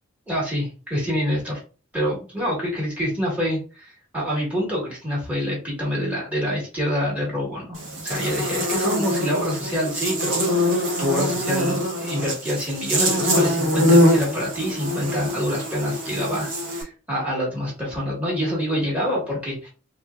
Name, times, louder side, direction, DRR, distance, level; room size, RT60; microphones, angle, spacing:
voice 1, 0.3-1.6 1.9-19.7, equal, 10° right, -5 dB, 1.7 m, -26 dB
Buzz, 7.8-16.8, equal, 70° right, 1.3 m, -23 dB
3.3 x 3.1 x 2.5 m, 0.36 s
head